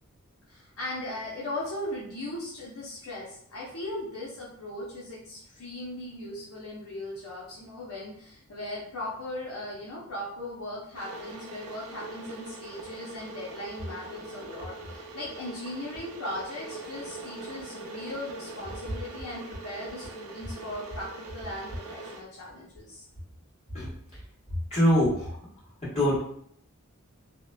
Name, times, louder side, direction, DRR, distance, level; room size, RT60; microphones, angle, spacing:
voice 1, 0.5-23.0, left 1 dB, 70° left, -6 dB, 0.6 m, -38 dB
Water / Boiling, 10.9-22.2, right 2 dB, 85° right, 0.5 m, -42 dB
voice 2, 24.7-25.4 25.9-26.2, equal, 30° left, -10 dB, 1.4 m, -23 dB
2.8 x 2.1 x 2.2 m, 0.66 s
head